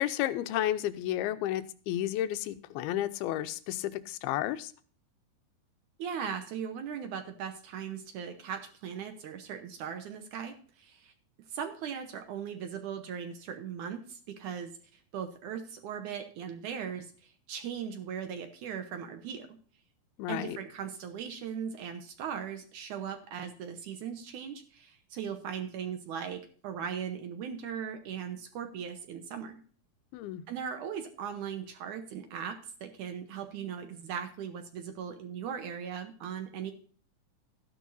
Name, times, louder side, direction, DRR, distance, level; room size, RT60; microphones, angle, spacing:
voice 1, 0.0-4.7 20.2-20.6 30.1-30.4, left 13 dB, 85° left, 13 dB, 2.6 m, -32 dB
voice 2, 6.0-11.1 11.5-14.7 15.1-19.6 20.3-29.6 30.5-36.7, right 7 dB, 70° right, 7 dB, 2.0 m, -38 dB
13.5 x 11.0 x 2.7 m, 0.43 s
omnidirectional pair, 4.4 m